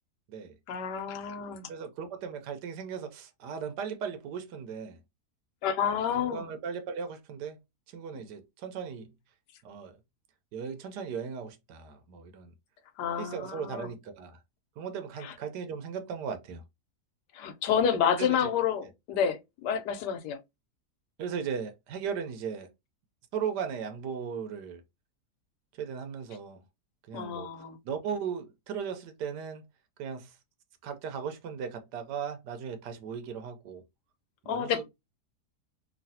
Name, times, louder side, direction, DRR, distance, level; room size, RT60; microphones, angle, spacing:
voice 1, 0.7-1.7 5.6-6.5 13.0-13.9 15.2-15.3 17.3-20.4 27.1-27.8 34.5-34.8, left 8 dB, 90° left, 1.3 m, -29 dB
voice 2, 1.7-5.0 6.1-7.6 7.9-9.1 9.6-9.9 10.5-12.5 13.2-14.4 14.8-16.6 17.9-18.5 21.2-22.7 23.3-24.8 25.8-26.6 27.1-27.5 27.8-29.6 30.0-30.3 30.8-33.8 34.4-34.8, right 7 dB, 90° right, 1.3 m, -37 dB
3.1 x 2.6 x 2.7 m
omnidirectional pair, 1.7 m